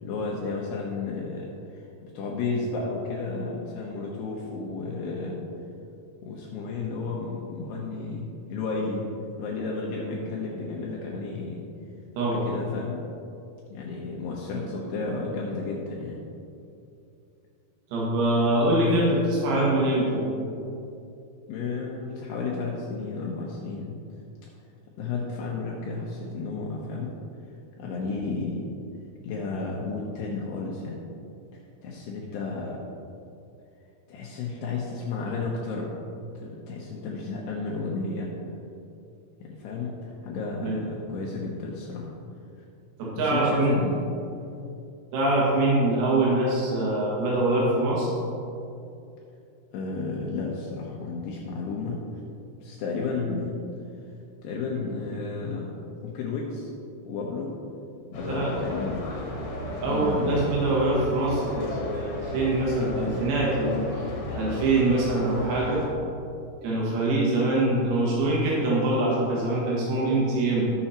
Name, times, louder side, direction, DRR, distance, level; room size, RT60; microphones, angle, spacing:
voice 1, 0.0-1.5 1.7-5.4 6.2-9.1 9.4-11.6 12.2-13.0 13.7-16.2 21.5-24.0 25.0-27.1 27.8-28.7 29.2-31.0 31.8-32.8 34.1-36.0 36.4-38.3 39.4-42.1 43.1-44.0 49.7-52.0 52.6-53.6 54.4-55.7 56.0-56.7 57.0-57.5 58.1-59.1 59.9-60.5, left 4 dB, 90° left, -3 dB, 2.3 m, -32 dB
voice 2, 17.9-20.3 40.6-40.8 43.0-43.7 45.1-48.1 58.3-58.5 59.8-63.9 64.3-65.8 66.6-70.6, right 2 dB, 80° right, -5 dB, 4.4 m, -24 dB
sound 1, 58.1-65.9, left 2 dB, 55° left, 2.4 m, -34 dB
12.0 x 6.9 x 4.3 m, 2.7 s
omnidirectional pair, 6.0 m